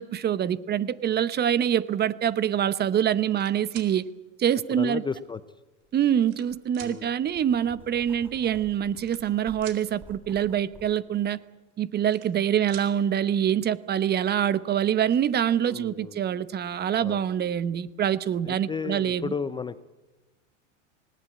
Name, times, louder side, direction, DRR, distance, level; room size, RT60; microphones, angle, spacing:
voice 1, 0.0-4.1 4.4-5.0 5.9-11.4 11.8-19.3, right 9 dB, 25° right, 17 dB, 0.9 m, -25 dB
sound 1, 3.1-3.9 4.9-5.0 5.8-6.5 6.7-6.9 8.1-8.2 8.4-8.6 8.9-9.8 11.7-12.4 12.7-12.9 14.4-14.5 14.8-15.2, right 10 dB, 50° right, 3.9 m, -46 dB
voice 2, 4.7-5.4 6.8-7.1 15.6-16.2 17.0-17.2 18.4-19.8, left 5 dB, 15° left, 14 dB, 0.6 m, -34 dB
Writing, 5.8-6.0 6.5-10.9, right 1 dB, 5° right, 2.9 m, -51 dB
19.5 x 18.0 x 8.6 m, 1.1 s
hypercardioid pair, 105°, 37 cm